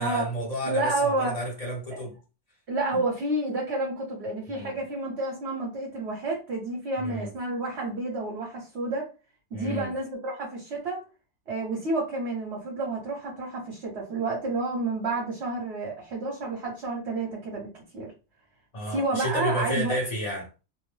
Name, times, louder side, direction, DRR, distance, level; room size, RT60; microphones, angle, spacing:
voice 1, 0.0-0.9 1.2-2.1 4.5-4.8 7.0-7.3 9.5-9.9 18.7-20.5, equal, 40° left, 0.9 m, -31 dB
voice 2, 0.6-1.4 1.9-2.0 2.7-9.1 9.5-11.0 11.5-18.1 18.9-20.0, right 2 dB, 70° right, 1.1 m, -30 dB
2.5 x 2.0 x 3.1 m
omnidirectional pair, 1.2 m